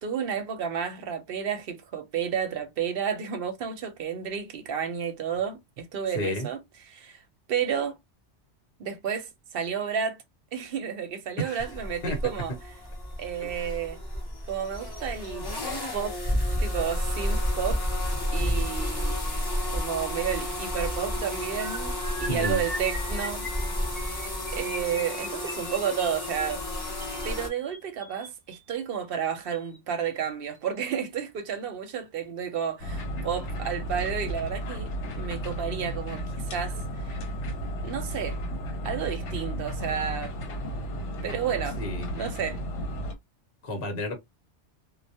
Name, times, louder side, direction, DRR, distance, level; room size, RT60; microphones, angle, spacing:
voice 1, 0.0-6.6 6.9-7.2 7.5-8.0 8.8-10.2 10.5-12.5 13.2-14.0 14.5-15.5 15.9-16.2 16.6-17.9 18.3-19.2 19.7-23.5 24.5-26.6 27.2-37.1 37.8-38.4 38.8-40.3 41.2-41.8 42.1-42.6, right 8 dB, 60° right, 0.7 m, -31 dB
voice 2, 6.1-6.5 11.4-11.6 12.0-12.2 13.6-13.8 22.3-22.6 41.8-42.1 43.6-44.2, equal, 55° left, 1.0 m, -31 dB
sound 1, 11.6-27.5, left 1 dB, 25° left, 0.6 m, -31 dB
sound 2, 21.6-28.8 29.5-29.8 30.0-30.3 30.5-30.8, right 1 dB, 20° right, 0.9 m, -40 dB
sound 3, 32.8-43.1, equal, 80° left, 1.0 m, -33 dB
2.2 x 2.1 x 2.7 m
omnidirectional pair, 1.2 m